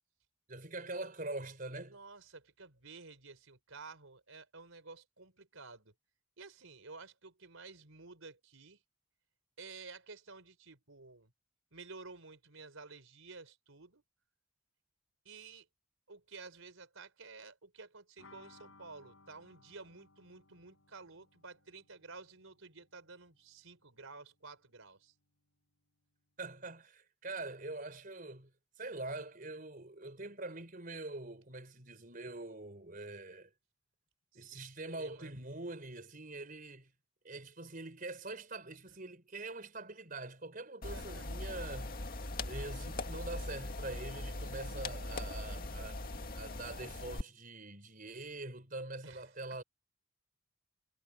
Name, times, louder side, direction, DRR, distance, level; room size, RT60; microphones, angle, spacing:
voice 1, 0.5-2.0 26.4-28.5 28.8-33.5 34.3-36.9 37.2-42.0 42.4-49.6, right 2 dB, 45° right, 4.8 m, -44 dB
voice 2, 1.8-5.9 6.4-8.8 9.6-11.3 11.7-14.0 15.2-15.7 16.1-25.1 34.3-34.6 35.0-35.3 40.9-41.3 45.2-45.4 49.0-49.6, right 4 dB, 90° right, 4.3 m, -52 dB
sound 1, 18.2-23.8 24.0-24.1 24.4-24.5, left 3 dB, 90° left, 6.6 m, -63 dB
sound 2, 40.8-47.2, left 2 dB, 45° left, 2.1 m, -41 dB
head